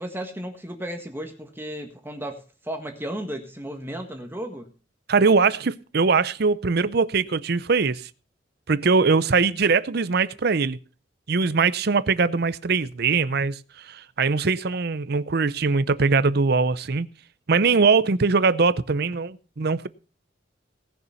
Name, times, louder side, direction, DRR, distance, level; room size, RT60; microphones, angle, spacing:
voice 1, 0.0-4.7, right 1 dB, 10° right, 1.6 m, -34 dB
voice 2, 5.1-8.1 8.7-10.8 11.3-13.6 13.8-17.1 17.5-19.9, right 4 dB, 60° right, 0.7 m, -21 dB
18.0 x 6.9 x 5.8 m
head